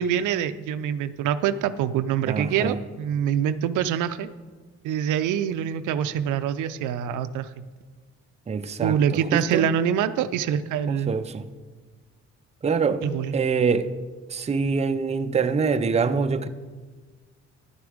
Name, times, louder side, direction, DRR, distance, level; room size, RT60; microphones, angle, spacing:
voice 1, 0.0-4.3 4.8-7.6 8.8-11.2 13.0-13.3, right 9 dB, 80° right, 0.5 m, -25 dB
voice 2, 2.3-2.8 8.5-9.0 9.3-9.7 10.9-11.5 12.6-13.0 13.3-14.0 14.3-16.5, right 5 dB, 20° right, 0.5 m, -24 dB
10.5 x 6.9 x 5.0 m
cardioid pair, 90°, 30 cm